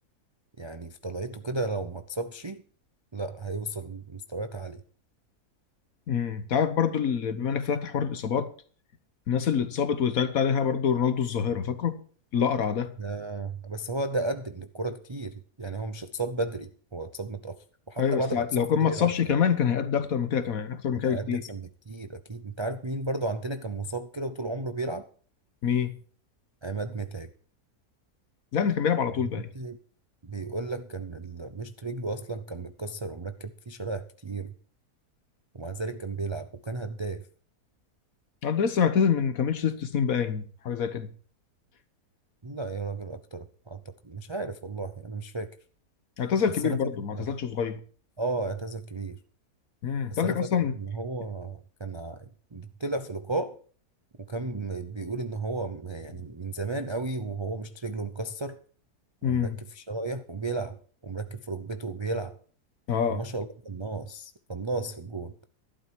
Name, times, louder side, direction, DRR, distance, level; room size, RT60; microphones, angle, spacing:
voice 1, 0.6-2.6 3.1-4.8 13.0-17.6 17.9-19.1 20.9-25.1 26.6-27.3 29.5-29.8 30.2-34.5 35.5-37.3 42.4-45.6 46.6-46.8 47.1-47.3 48.2-49.2 50.1-53.6 54.2-58.6 59.3-62.4 63.1-65.3, right 2 dB, 35° right, 0.4 m, -34 dB
voice 2, 6.1-8.5 9.3-12.0 12.3-12.9 18.0-21.4 25.6-26.0 28.5-29.5 38.4-41.1 46.2-47.8 49.8-50.7 59.2-59.6 62.9-63.2, left 7 dB, 65° left, 1.5 m, -26 dB
12.5 x 11.5 x 4.6 m
omnidirectional pair, 1.7 m